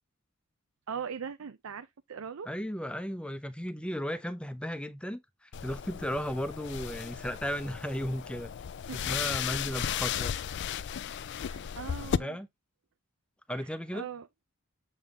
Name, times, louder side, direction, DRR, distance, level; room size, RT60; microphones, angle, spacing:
voice 1, 0.9-2.5 8.9-9.6 11.3-12.4 13.5-14.3, right 6 dB, 75° right, 0.5 m, -41 dB
voice 2, 2.5-8.5 8.9-10.4 12.0-12.5 13.5-14.1, equal, 5° left, 0.7 m, -35 dB
sound 1, 5.5-12.2, left 8 dB, 55° left, 0.4 m, -35 dB
7.4 x 3.5 x 3.7 m
head